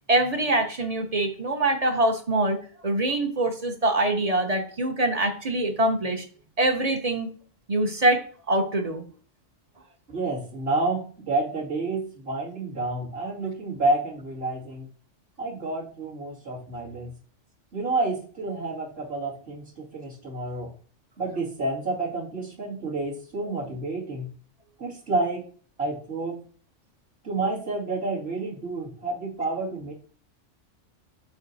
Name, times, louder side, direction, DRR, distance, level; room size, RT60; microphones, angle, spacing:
voice 1, 0.1-6.2 6.6-7.3 7.7-9.0, right 1 dB, 35° right, 6 dB, 0.8 m, -24 dB
voice 2, 10.1-14.9 15.4-17.1 17.7-20.7 21.2-24.3 24.8-25.5 25.8-26.4 27.2-29.9, right 2 dB, 55° right, -5 dB, 2.7 m, -29 dB
7.1 x 4.5 x 4.1 m, 0.43 s
omnidirectional pair, 1.3 m